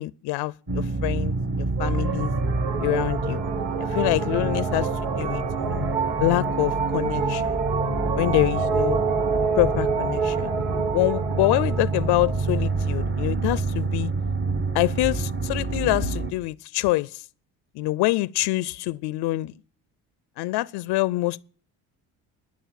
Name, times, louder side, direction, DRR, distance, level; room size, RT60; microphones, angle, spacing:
voice 1, 0.0-2.3 2.8-3.4 3.8-5.9 6.2-7.6 8.1-9.0 9.6-10.5 10.9-14.1 14.7-17.3 17.7-19.5 20.4-21.4, left 19 dB, 75° left, 0.5 m, -25 dB
sound 1, 0.7-16.3, right 2 dB, 30° right, 1.6 m, -28 dB
sound 2, 1.8-13.6, right 6 dB, 85° right, 1.1 m, -28 dB
11.5 x 10.0 x 7.4 m
supercardioid pair, 80°, 40 cm